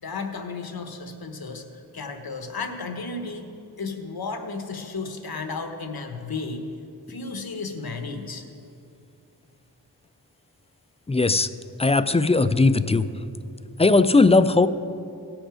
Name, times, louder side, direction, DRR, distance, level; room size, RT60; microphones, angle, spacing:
voice 1, 0.0-3.5 3.8-6.7 7.1-8.5, left 4 dB, 70° left, 6 dB, 1.1 m, -33 dB
voice 2, 11.1-11.5 11.8-13.1 13.8-14.7, left 3 dB, 15° left, 12 dB, 0.3 m, -18 dB
16.5 x 6.3 x 5.0 m, 2.6 s
wide cardioid pair, 70°, 38 cm